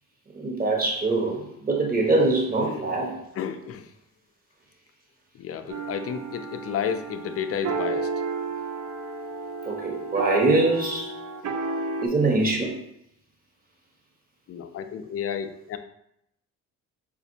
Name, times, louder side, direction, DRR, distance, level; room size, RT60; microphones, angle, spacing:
voice 1, 0.3-3.1 9.6-11.1 12.0-12.8, right 2 dB, 25° right, -1 dB, 1.2 m, -23 dB
voice 2, 2.6-3.0 3.3-3.9 5.3-8.1 14.5-15.8, left 8 dB, 40° left, 8 dB, 0.4 m, -32 dB
sound 1, 5.7-12.0, right 3 dB, 50° right, 0.6 m, -32 dB
4.2 x 2.5 x 2.7 m, 0.77 s
supercardioid pair, 70°, 35 cm